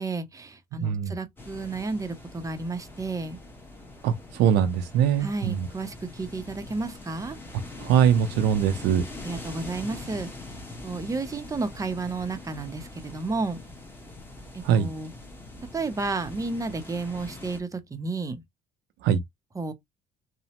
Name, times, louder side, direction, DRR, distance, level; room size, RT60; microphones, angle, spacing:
voice 1, 0.0-3.4 5.2-7.4 9.2-10.3 10.8-13.6 14.5-15.1 15.7-18.4 19.6-19.7, right 3 dB, 20° right, 0.6 m, -32 dB
voice 2, 0.7-1.2 4.0-5.7 7.8-9.0 14.6-14.9 19.0-19.2, right 9 dB, 85° right, 0.4 m, -22 dB
sound 1, 1.4-17.6, left 2 dB, 15° left, 1.0 m, -43 dB
2.9 x 2.0 x 2.8 m
cardioid pair, 110°, 17 cm